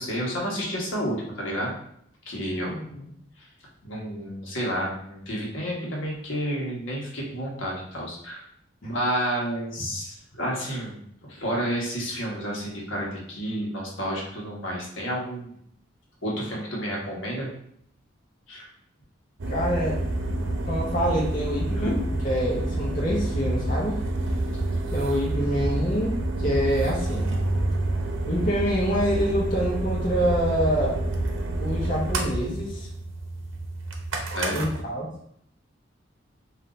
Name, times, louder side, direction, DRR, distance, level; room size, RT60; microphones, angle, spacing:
voice 1, 0.0-1.7 2.3-2.8 3.8-8.4 8.8-11.0 11.3-15.5 16.2-17.5 18.5-18.7 21.8-21.9 34.3-34.7, equal, 75° left, -3 dB, 1.2 m, -30 dB
voice 2, 2.7-3.1 19.5-20.0 20.7-24.0 24.9-27.3 28.3-31.0 31.6-32.9 34.5-35.1, equal, 45° left, -5 dB, 0.9 m, -26 dB
sound 1, 19.4-34.8, right 1 dB, 80° right, 0.7 m, -28 dB
3.8 x 2.7 x 3.9 m, 0.69 s
head